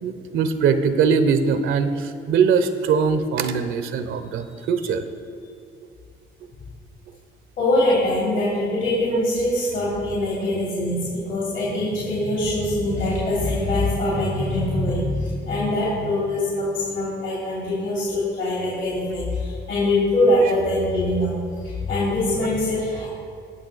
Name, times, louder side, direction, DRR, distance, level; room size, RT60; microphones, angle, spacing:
voice 1, 0.0-5.0, right 6 dB, 85° right, 9 dB, 0.8 m, -21 dB
voice 2, 7.6-21.3 21.6-23.1, left 1 dB, 75° left, -6 dB, 3.0 m, -23 dB
19.0 x 6.4 x 4.0 m, 2.3 s
cardioid pair, 90°, 20 cm